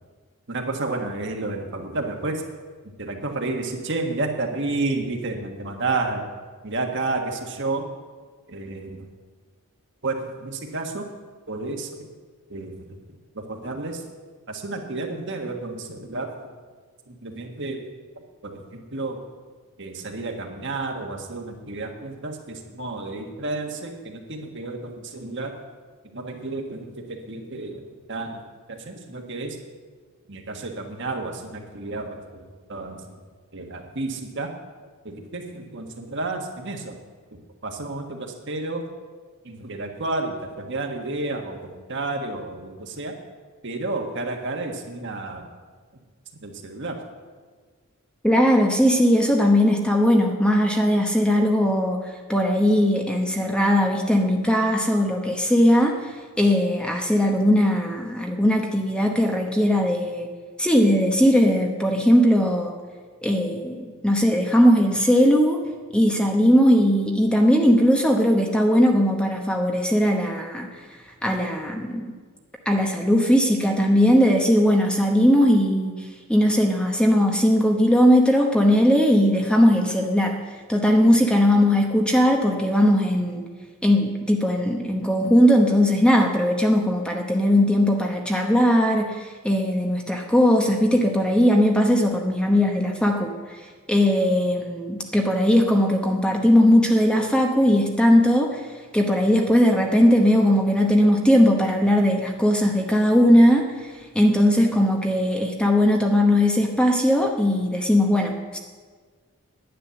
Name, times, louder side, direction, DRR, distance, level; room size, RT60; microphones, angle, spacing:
voice 1, 0.5-2.4 3.0-6.2 6.6-7.8 8.5-9.0 10.0-11.1 11.5-11.9 12.5-12.7 13.3-14.0 14.5-16.3 17.1-17.8 18.4-19.2 19.8-25.5 26.1-27.8 28.1-28.4 28.7-29.6 30.3-32.2 32.7-33.0 33.5-34.5 35.0-36.9 37.6-38.8 39.4-43.1 43.6-45.4 46.4-47.0, right 2 dB, 55° right, 3 dB, 1.5 m, -31 dB
voice 2, 48.2-52.0 52.3-60.3 60.6-62.7 63.2-65.6 65.9-70.7 71.2-72.1 72.7-75.9 76.3-80.4 80.7-83.5 83.8-93.3 93.9-98.6 98.9-103.9 104.1-108.6, equal, 5° left, 2 dB, 0.9 m, -19 dB
10.5 x 9.9 x 6.9 m, 1.5 s
head